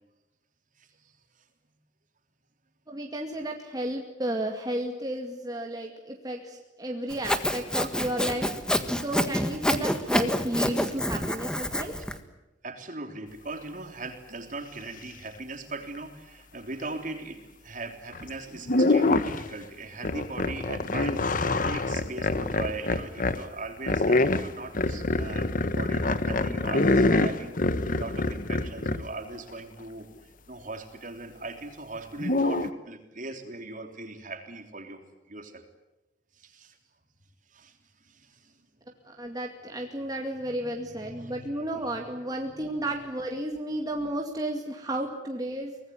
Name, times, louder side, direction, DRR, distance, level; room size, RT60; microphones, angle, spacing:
voice 1, 0.8-1.1 12.6-27.6 27.9-35.0 35.3-35.6 36.3-36.8 37.5-38.6 39.2-39.3 40.5-41.9 42.4-42.8, right 2 dB, 45° right, 5 dB, 3.4 m, -40 dB
voice 2, 2.9-8.5 8.9-11.9 39.0-45.8, right 1 dB, 20° right, 1 dB, 2.2 m, -33 dB
Sawing, 7.1-12.2, equal, 5° left, 1.6 m, -27 dB
sound 1, 18.1-18.3 18.7-19.5 20.0-23.4 23.9-29.1 32.2-32.7, left 2 dB, 45° left, 1.1 m, -25 dB
24.0 x 19.5 x 9.7 m, 1.0 s
head